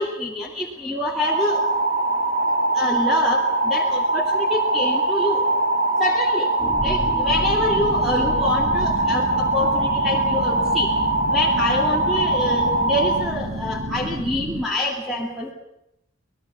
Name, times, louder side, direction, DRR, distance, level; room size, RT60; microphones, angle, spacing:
voice 1, 0.0-1.6 2.7-5.5 6.0-6.5 6.8-10.9 11.3-15.5, left 2 dB, ahead, -1 dB, 2.3 m, -26 dB
sound 1, 1.2-13.3, right 2 dB, 35° right, 2.6 m, -22 dB
sound 2, 6.6-11.1 11.6-11.7, equal, 25° left, 1.8 m, -33 dB
sound 3, 7.7-14.7, right 1 dB, 50° right, 1.6 m, -31 dB
26.0 x 19.5 x 7.0 m, 0.82 s
head